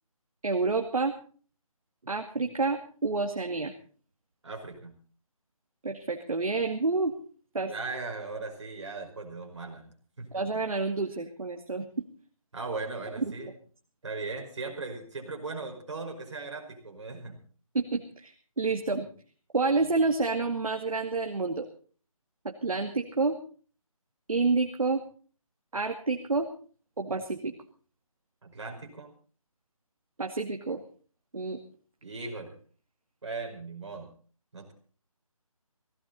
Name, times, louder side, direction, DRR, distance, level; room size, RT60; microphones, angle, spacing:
voice 1, 0.4-1.1 2.1-3.7 5.8-7.1 7.5-7.7 10.3-12.0 13.2-13.3 17.7-19.1 19.5-21.7 22.4-23.4 24.3-25.0 25.7-26.5 27.0-27.5 30.2-30.8 31.3-31.6, right 3 dB, 75° right, 3 dB, 2.4 m, -29 dB
voice 2, 4.4-4.9 7.7-10.6 12.5-13.5 14.0-17.4 28.4-29.1 32.0-32.6 33.2-34.1 34.5-34.7, right 3 dB, 55° right, 2 dB, 5.4 m, -38 dB
18.5 x 17.0 x 4.1 m, 0.42 s
hypercardioid pair, 175°, 18 cm